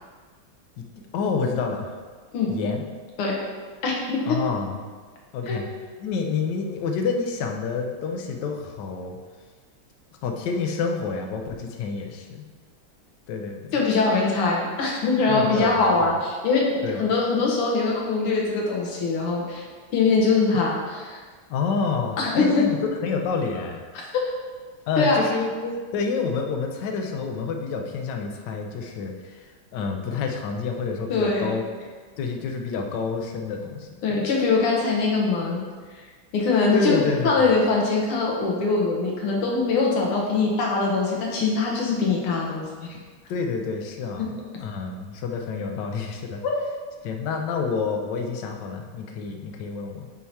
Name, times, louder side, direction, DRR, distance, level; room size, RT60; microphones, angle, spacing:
voice 1, 1.1-2.0 2.5-2.8 4.3-4.8 5.3-5.7 6.0-9.2 10.2-12.5 13.3-13.8 15.3-15.9 16.8-17.0 21.5-23.8 24.9-31.6 32.2-34.2 36.7-37.3 43.3-46.4 47.0-50.1, left 5 dB, 65° left, 3 dB, 1.2 m, -28 dB
voice 2, 3.8-4.4 5.5-5.6 13.7-19.6 19.9-21.2 22.2-22.6 24.2-24.3 25.0-25.2 31.1-31.5 34.0-35.6 36.0-36.1 36.3-37.0 37.2-42.7 46.4-46.5, left 3 dB, 85° left, -2 dB, 2.0 m, -22 dB
8.3 x 2.8 x 4.5 m, 1.5 s
omnidirectional pair, 2.4 m